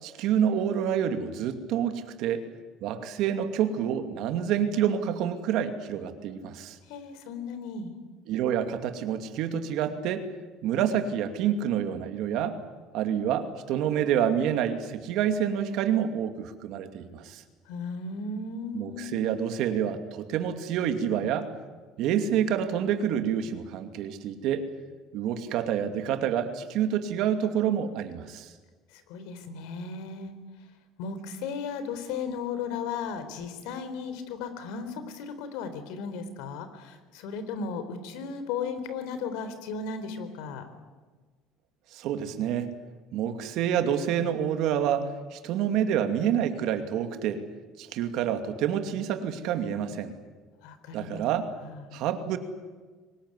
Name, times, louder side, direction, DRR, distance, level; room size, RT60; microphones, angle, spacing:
voice 1, 0.0-2.4 2.8-6.8 8.3-10.2 10.6-12.6 12.9-17.4 18.7-21.5 22.0-24.7 25.1-28.5 41.9-42.7 43.1-47.4 47.8-50.1 50.9-51.5 51.9-52.4, right 9 dB, 60° right, 8 dB, 2.5 m, -28 dB
voice 2, 6.9-7.9 17.7-19.1 28.9-30.3 31.0-40.7 50.6-51.2 51.6-51.9, left 5 dB, 80° left, 10 dB, 3.8 m, -35 dB
24.0 x 20.5 x 9.8 m, 1.4 s
cardioid pair, 145°, 0 cm